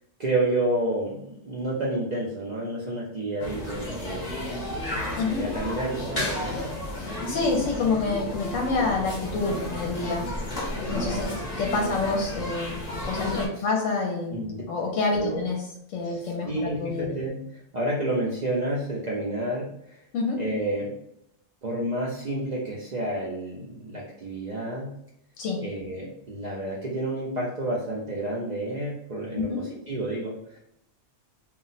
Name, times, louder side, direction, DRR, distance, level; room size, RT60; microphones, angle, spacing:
voice 1, 0.2-4.6 5.2-6.6 11.0-11.4 13.6-13.7 14.3-14.6 15.1-15.4 16.0-17.3 17.7-19.7 20.4-20.9 21.6-24.9 25.6-30.6, right 1 dB, 55° right, -5 dB, 0.5 m, -30 dB
sound 1, 3.4-13.5, left 1 dB, 40° left, 0.8 m, -32 dB
voice 2, 5.1-5.5 6.9-10.3 10.9-11.3 11.5-15.6 15.9-17.1 20.1-20.4 25.4-25.6 29.3-29.6, left 3 dB, 75° left, 0 dB, 0.9 m, -27 dB
2.4 x 2.0 x 3.9 m, 0.76 s
omnidirectional pair, 1.3 m